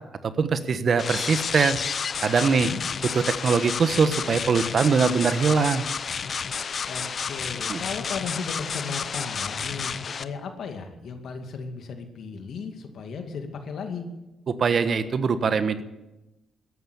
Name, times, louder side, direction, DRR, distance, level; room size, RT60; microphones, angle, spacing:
voice 1, 0.4-1.8 2.2-2.7 3.1-5.8 7.7-7.8 14.5-15.8, right 5 dB, 55° right, 11 dB, 1.2 m, -22 dB
sound 1, 1.0-10.2, left 6 dB, 55° left, 0.7 m, -31 dB
voice 2, 2.5-2.8 6.9-14.0, left 5 dB, 70° left, 5 dB, 2.3 m, -35 dB
14.5 x 11.0 x 8.4 m, 0.98 s
supercardioid pair, 60°, 0 cm